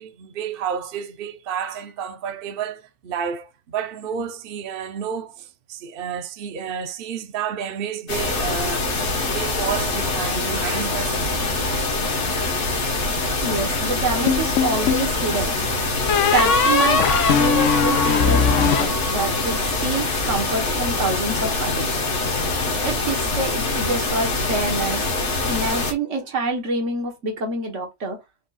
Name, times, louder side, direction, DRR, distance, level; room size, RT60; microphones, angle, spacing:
voice 1, 0.0-8.9 9.3-11.5 12.7-12.9, right 7 dB, 55° right, 0.8 m, -30 dB
sound 1, 8.1-25.9, left 2 dB, 70° left, 1.5 m, -24 dB
voice 2, 13.4-15.6 16.3-21.9 22.8-25.0 25.5-28.2, right 3 dB, 80° right, 1.5 m, -27 dB
sound 2, 14.3-15.1 16.1-19.6, left 5 dB, 90° left, 1.0 m, -20 dB
5.2 x 2.3 x 4.1 m
omnidirectional pair, 1.2 m